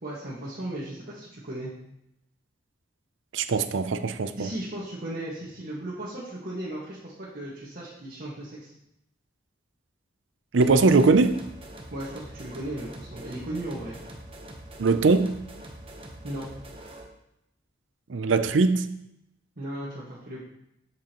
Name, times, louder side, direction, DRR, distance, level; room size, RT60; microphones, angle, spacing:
voice 1, 0.0-1.7 4.4-8.7 11.9-14.0 16.2-16.4 19.6-20.4, right 1 dB, 50° right, -9 dB, 1.6 m, -36 dB
voice 2, 3.3-4.5 10.5-11.4 14.8-15.4 18.1-18.9, right 3 dB, 70° right, 10 dB, 0.5 m, -21 dB
sound 1, 10.6-17.1, right 1 dB, 30° right, 1.0 m, -44 dB
7.4 x 7.3 x 3.0 m, 0.81 s
head